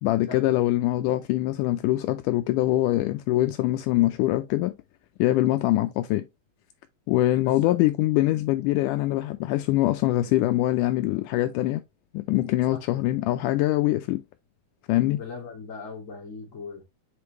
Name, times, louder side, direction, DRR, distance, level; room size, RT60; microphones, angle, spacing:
voice 1, 0.0-4.8 5.2-6.2 7.1-11.8 12.1-14.2 14.9-15.2, left 16 dB, 80° left, 2.0 m, -23 dB
voice 2, 7.4-7.8 12.7-12.8 15.1-16.8, left 4 dB, 25° left, 2.3 m, -39 dB
7.6 x 4.6 x 3.0 m
omnidirectional pair, 3.8 m